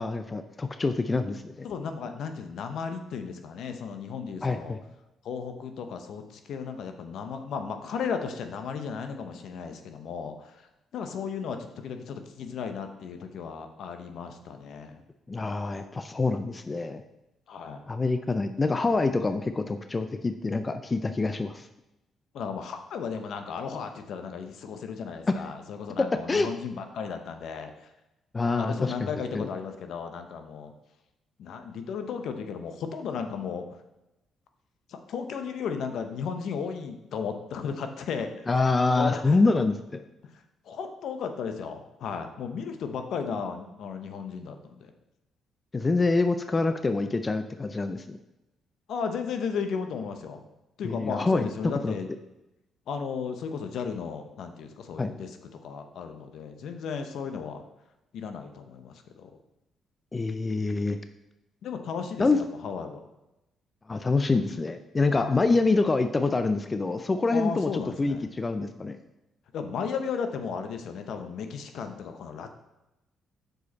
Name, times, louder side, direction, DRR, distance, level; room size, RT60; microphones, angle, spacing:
voice 1, 0.0-1.7 4.4-4.8 15.3-17.0 17.9-21.7 26.3-26.5 28.3-28.9 29.3-29.5 38.5-40.0 45.7-48.2 50.8-51.5 51.8-51.9 55.0-55.1 60.1-61.0 62.2-62.4 63.9-69.0, left 3 dB, 25° left, 9 dB, 0.4 m, -26 dB
voice 2, 1.6-4.8 5.2-15.0 17.5-17.8 22.3-27.9 28.6-30.7 31.4-33.7 34.9-38.5 38.9-39.4 40.2-44.9 48.9-50.4 50.8-52.1 52.9-55.4 55.6-57.6 58.1-59.4 61.6-63.0 65.1-65.4 67.3-68.2 69.5-72.5, left 6 dB, 70° left, 7 dB, 0.7 m, -35 dB
6.4 x 5.1 x 4.1 m, 0.94 s
cardioid pair, 90°, 0 cm